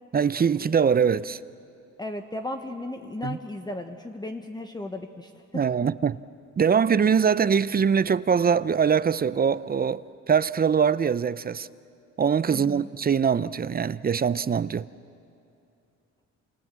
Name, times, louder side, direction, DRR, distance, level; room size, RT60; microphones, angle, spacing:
voice 1, 0.1-1.4 3.2-3.4 5.5-6.2 6.6-11.7 12.2-14.9, right 7 dB, 30° right, 0.6 m, -23 dB
voice 2, 2.0-5.6 12.5-12.9, left 2 dB, 15° left, 1.2 m, -35 dB
28.0 x 26.5 x 7.5 m
cardioid pair, 90°, 30 cm